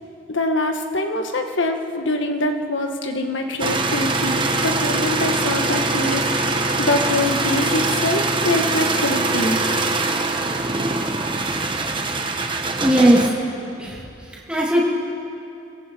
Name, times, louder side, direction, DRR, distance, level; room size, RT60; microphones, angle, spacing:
voice 1, 0.3-9.7, left 2 dB, 85° left, 4 dB, 1.7 m, -24 dB
sound 1, 3.6-13.3, right 3 dB, 25° right, 1.3 m, -22 dB
voice 2, 12.8-13.3 13.8-14.1 14.3-14.8, right 1 dB, 5° right, -5 dB, 2.4 m, -17 dB
28.0 x 24.0 x 4.7 m, 2.8 s
head